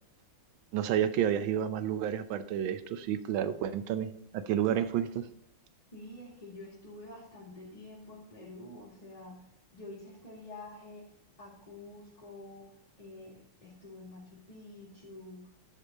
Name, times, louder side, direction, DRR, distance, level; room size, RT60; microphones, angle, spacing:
voice 1, 0.7-5.3, right 10 dB, 75° right, 12 dB, 1.4 m, -30 dB
voice 2, 5.9-9.4 9.7-11.1 11.4-12.7 13.0-13.3 13.6-15.4, left 2 dB, 20° left, -6 dB, 2.1 m, -48 dB
10.5 x 5.3 x 4.0 m, 0.70 s
omnidirectional pair, 2.3 m